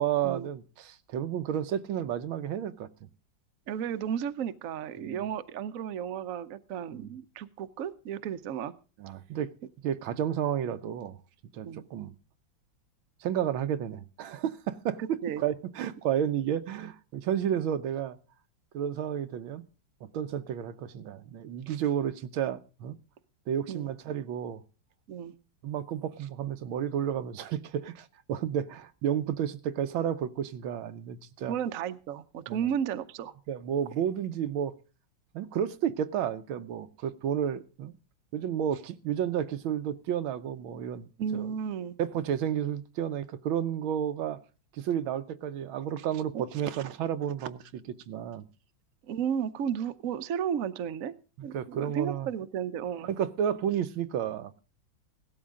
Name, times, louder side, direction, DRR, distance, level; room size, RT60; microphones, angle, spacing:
voice 1, 0.0-2.9 5.0-5.2 6.9-7.1 9.0-9.5 9.8-11.2 11.5-12.1 13.2-18.2 18.7-19.6 20.0-23.0 23.5-24.6 25.6-31.5 32.5-32.7 33.5-34.7 35.3-37.9 38.3-41.5 42.0-44.4 44.8-48.5 51.4-52.3 53.0-54.6, right 9 dB, 85° right, 1.6 m, -31 dB
voice 2, 3.7-8.7 11.6-11.8 15.0-15.4 23.7-23.9 25.1-25.3 31.5-33.3 41.2-41.9 46.3-46.4 49.0-51.1 51.4-53.1, right 8 dB, 60° right, 1.0 m, -33 dB
17.0 x 12.5 x 3.7 m
omnidirectional pair, 2.2 m